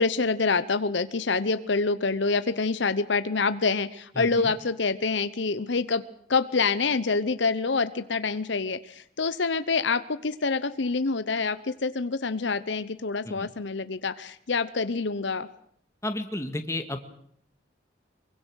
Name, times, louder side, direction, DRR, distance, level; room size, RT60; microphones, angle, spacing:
voice 1, 0.0-6.0 6.3-15.5, left 4 dB, 70° left, 13 dB, 0.9 m, -26 dB
voice 2, 4.2-4.5 13.3-13.5 16.0-17.0, left 1 dB, 15° left, 7 dB, 1.9 m, -32 dB
24.5 x 23.5 x 6.4 m, 0.65 s
head